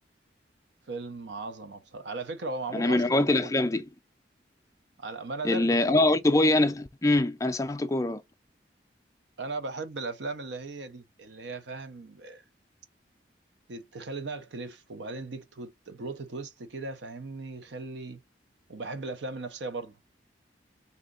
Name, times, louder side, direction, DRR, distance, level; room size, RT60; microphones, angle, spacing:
voice 1, 0.9-3.6 5.0-6.0 9.4-12.4 13.7-18.2 18.7-20.0, right 3 dB, 75° right, 0.6 m, -37 dB
voice 2, 2.7-3.9 5.4-8.2, left 2 dB, 20° left, 0.4 m, -24 dB
3.7 x 2.8 x 3.8 m
head